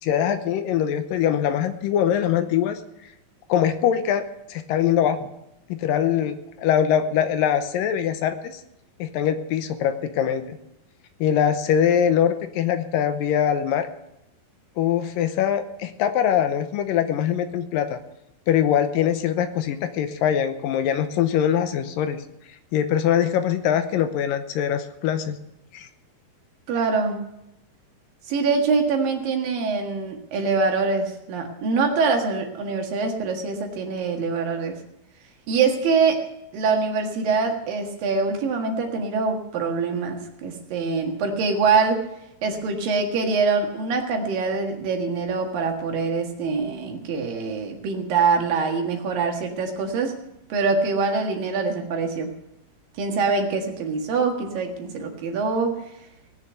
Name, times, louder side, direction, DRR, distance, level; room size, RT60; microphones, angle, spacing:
voice 1, 0.0-2.8 3.5-4.2 4.5-5.3 5.7-8.6 9.0-10.6 11.2-13.9 14.8-18.0 18.5-22.2 22.7-25.4 25.7-25.9, left 9 dB, 80° left, 9 dB, 2.5 m, -22 dB
voice 2, 26.7-27.2 28.3-34.7 35.5-36.2 36.5-42.0 42.4-50.2 50.5-52.3 53.0-55.8, right 4 dB, 75° right, 3 dB, 3.4 m, -24 dB
18.5 x 6.9 x 8.0 m, 0.84 s
omnidirectional pair, 4.1 m